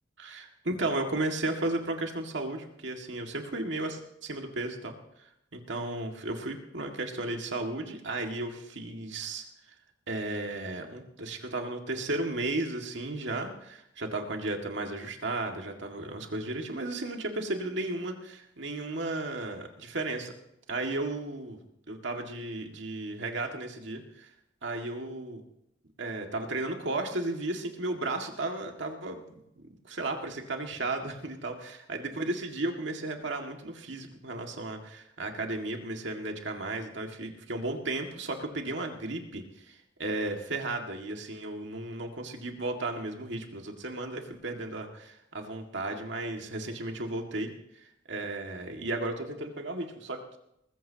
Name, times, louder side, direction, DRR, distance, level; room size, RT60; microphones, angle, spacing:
voice 1, 0.2-4.9 5.5-9.5 10.1-20.3 20.7-21.6 21.9-24.3 24.6-25.4 26.0-29.2 29.9-50.4, right 2 dB, 65° right, 3 dB, 2.0 m, -34 dB
20.0 x 15.0 x 2.9 m, 0.79 s
head